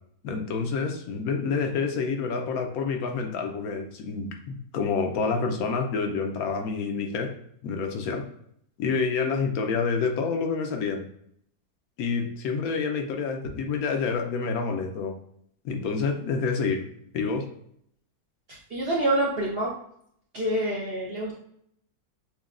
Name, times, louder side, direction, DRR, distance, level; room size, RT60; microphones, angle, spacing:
voice 1, 0.2-7.3 7.6-8.3 8.8-11.1 12.0-15.1 15.6-16.9 17.1-17.5, left 5 dB, 75° left, 4 dB, 1.0 m, -28 dB
voice 2, 18.5-19.7 20.3-21.3, right 1 dB, 55° right, -3 dB, 0.7 m, -27 dB
5.9 x 2.2 x 2.4 m, 0.69 s
omnidirectional pair, 1.6 m